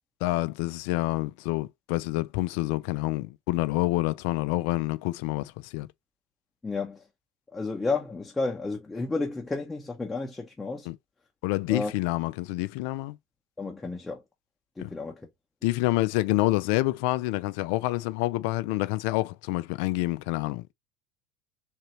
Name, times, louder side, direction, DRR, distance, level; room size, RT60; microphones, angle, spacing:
voice 1, 0.2-5.9 10.9-11.0 11.4-13.2 14.8-14.9 15.6-20.7, left 18 dB, 70° left, 0.3 m, -27 dB
voice 2, 6.6-7.0 7.5-10.9 11.7-11.9 13.6-14.2 14.8-15.1, left 3 dB, 15° left, 0.9 m, -31 dB
3.8 x 2.7 x 3.1 m
hypercardioid pair, 80°, 0 cm